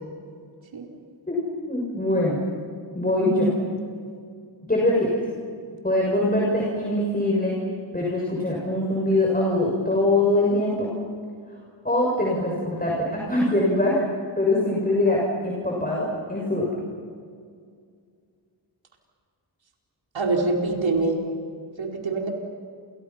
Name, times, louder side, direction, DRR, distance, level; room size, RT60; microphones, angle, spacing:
voice 1, 1.7-2.4 2.9-3.5 4.7-5.1 5.8-7.5 7.9-10.9 11.8-14.0 14.4-16.7, left 1 dB, 20° left, -3 dB, 6.7 m, -23 dB
voice 2, 20.1-21.2 21.8-22.3, right 3 dB, 75° right, 0 dB, 4.8 m, -24 dB
29.5 x 29.0 x 5.9 m, 2.2 s
wide cardioid pair, 85°, 46 cm